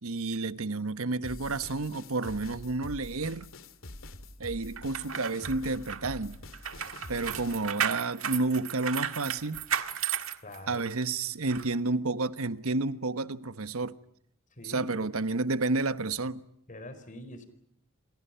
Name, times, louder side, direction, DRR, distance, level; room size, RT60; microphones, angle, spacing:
voice 1, 0.0-3.5 4.4-6.4 7.1-9.6 10.7-14.0 14.6-16.4, right 3 dB, 90° right, 1.2 m, -30 dB
sound 1, 1.2-7.6, left 1 dB, 70° left, 2.3 m, -45 dB
sound 2, 4.8-11.0 11.5-11.6, right 8 dB, 70° right, 1.8 m, -34 dB
voice 2, 10.4-10.9 14.5-15.1 16.7-17.5, left 1 dB, 40° left, 4.5 m, -44 dB
28.5 x 27.5 x 5.8 m
head